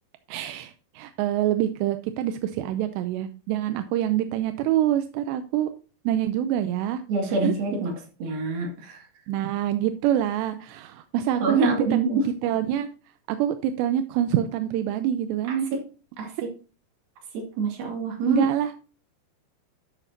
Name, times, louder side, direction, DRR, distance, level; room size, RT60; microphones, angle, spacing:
voice 1, 0.3-5.7 6.1-7.0 7.4-7.5 9.3-11.7 12.4-12.9 13.3-15.7 18.3-18.8, right 11 dB, 85° right, 9 dB, 2.7 m, -25 dB
voice 2, 7.1-7.9 8.2-9.0 11.4-12.3 15.5-15.8 16.2-16.3 17.3-18.4, right 3 dB, 60° right, 1 dB, 3.8 m, -26 dB
11.5 x 7.0 x 2.8 m, 0.36 s
omnidirectional pair, 5.0 m